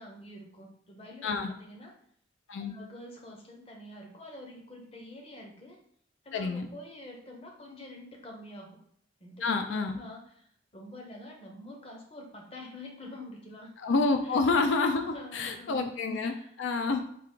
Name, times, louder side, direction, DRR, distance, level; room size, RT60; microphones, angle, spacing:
voice 1, 0.0-1.9 2.6-5.8 6.2-8.8 9.2-13.9 14.3-14.4 15.0-15.9 16.2-16.5, left 1 dB, 30° left, 1 dB, 0.7 m, -47 dB
voice 2, 6.3-6.7 9.4-10.0 13.8-17.0, left 3 dB, 80° left, 5 dB, 0.4 m, -28 dB
3.5 x 2.5 x 4.5 m, 0.67 s
head